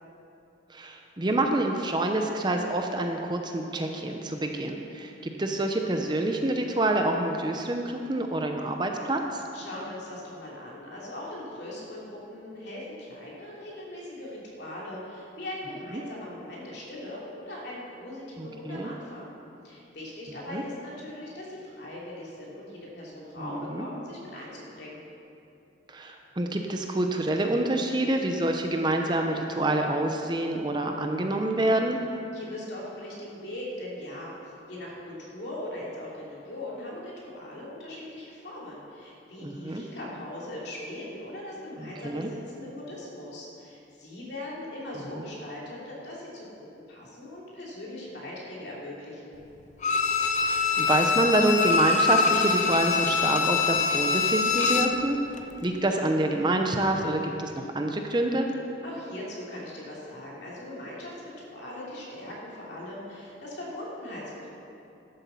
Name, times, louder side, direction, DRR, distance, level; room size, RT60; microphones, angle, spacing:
voice 1, 0.7-9.4 15.9-16.0 18.4-18.9 20.5-20.6 23.4-23.9 25.9-32.0 39.4-39.8 41.8-42.3 50.4-55.2 55.6-58.5, right 1 dB, 25° right, 3 dB, 0.7 m, -27 dB
voice 2, 9.5-19.3 19.6-25.0 32.3-46.5 46.9-49.4 58.8-64.5, left 1 dB, 60° left, -5 dB, 3.0 m, -40 dB
Bowed string instrument, 49.8-55.0 55.4-55.5, left 5 dB, 40° left, 0.6 m, -24 dB
11.5 x 8.0 x 7.0 m, 2.8 s
head